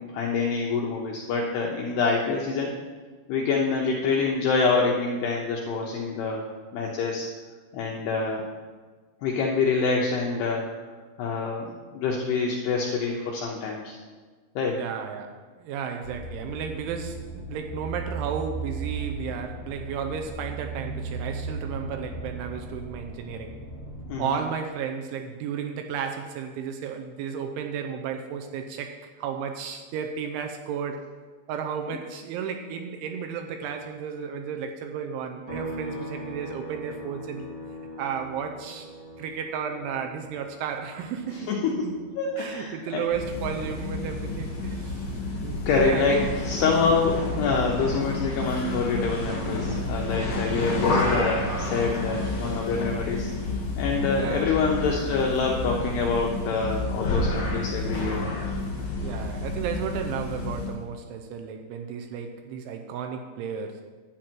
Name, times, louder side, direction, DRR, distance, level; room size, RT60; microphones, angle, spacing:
voice 1, 0.0-2.7 3.3-6.4 6.7-7.3 7.7-8.4 9.2-10.7 11.2-14.0 14.6-14.8 24.1-24.4 41.5-41.7 42.2-43.0 45.7-46.2 46.4-53.3 53.8-58.2, left 4 dB, 80° left, -1 dB, 2.4 m, -26 dB
voice 2, 14.8-23.6 24.2-31.0 31.5-37.5 38.0-42.0 42.4-45.0 45.4-46.3 50.5-51.0 54.1-54.8 59.0-63.8, right 7 dB, 80° right, 5 dB, 2.9 m, -33 dB
sound 1, 16.0-24.1, right 3 dB, 25° left, 3.2 m, -36 dB
sound 2, 35.5-49.0 49.4-51.6, equal, 40° right, 1.1 m, -44 dB
sound 3, 43.0-60.8, left 2 dB, 40° left, 2.4 m, -30 dB
11.5 x 9.0 x 4.5 m, 1.4 s
omnidirectional pair, 5.8 m